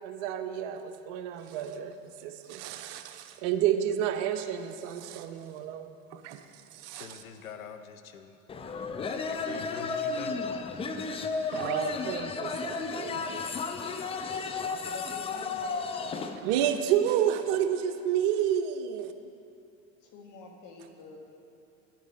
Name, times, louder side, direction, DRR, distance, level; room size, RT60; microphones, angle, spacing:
voice 1, 0.0-7.2 11.5-13.5 14.3-14.8 16.4-19.1, right 10 dB, 55° right, 8 dB, 0.8 m, -30 dB
voice 2, 6.9-8.4 9.2-10.3, left 7 dB, 85° left, 8 dB, 0.7 m, -44 dB
sound 1, 8.5-16.4, left 4 dB, 15° left, 0.4 m, -33 dB
voice 3, 14.6-15.9 20.0-21.2, left 5 dB, 45° left, 1 dB, 1.6 m, -47 dB
10.0 x 9.3 x 4.0 m, 2.7 s
figure-of-eight pair, 75°, 41 cm